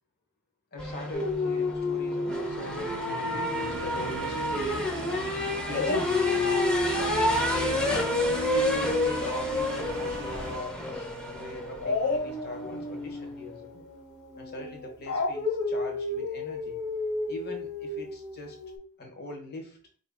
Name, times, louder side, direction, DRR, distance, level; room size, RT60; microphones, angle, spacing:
voice 1, 0.7-5.4 5.7-7.9 8.5-13.8 14.4-16.8 17.3-18.6 19.0-19.8, left 2 dB, 45° left, 2 dB, 1.1 m, -41 dB
sound 1, 0.8-13.3, left 1 dB, 5° left, 0.8 m, -30 dB
Dog, 1.1-5.3 5.7-10.7 11.8-18.8, left 3 dB, 65° left, 1.6 m, -32 dB
sound 2, 3.5-10.6, right 3 dB, 55° right, 0.7 m, -40 dB
4.4 x 2.6 x 3.5 m, 0.42 s
head